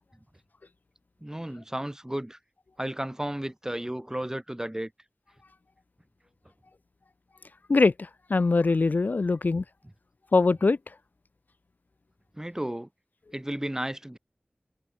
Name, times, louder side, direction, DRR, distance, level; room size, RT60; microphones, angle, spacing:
voice 1, 1.2-2.4 2.8-4.9 12.3-12.9 13.3-14.2, right 1 dB, 15° right, 2.2 m, -33 dB
voice 2, 7.7-9.6 10.3-10.8, left 3 dB, 65° left, 0.4 m, -22 dB
wide cardioid pair, 55°, 3 cm